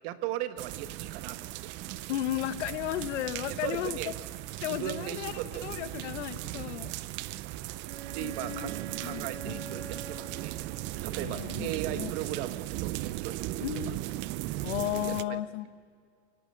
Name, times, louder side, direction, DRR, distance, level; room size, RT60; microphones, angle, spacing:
voice 1, 0.0-1.7 3.5-4.1 4.6-5.8 6.4-6.7 7.3-7.5 8.1-10.6 10.9-13.9 14.8-15.4, right 12 dB, 55° right, 11 dB, 1.4 m, -38 dB
sound 1, 0.6-15.2, right 16 dB, 35° right, 0.5 m, -37 dB
voice 2, 2.1-4.0 4.6-5.3 5.6-6.9 8.2-8.7 9.0-9.6 11.2-12.1 13.6-14.0 14.6-15.8, left 13 dB, 80° left, 12 dB, 1.3 m, -34 dB
Bowed string instrument, 7.8-11.4, right 5 dB, 90° right, 2.3 m, -44 dB
24.0 x 18.0 x 8.6 m, 2.2 s
supercardioid pair, 150°, 35 cm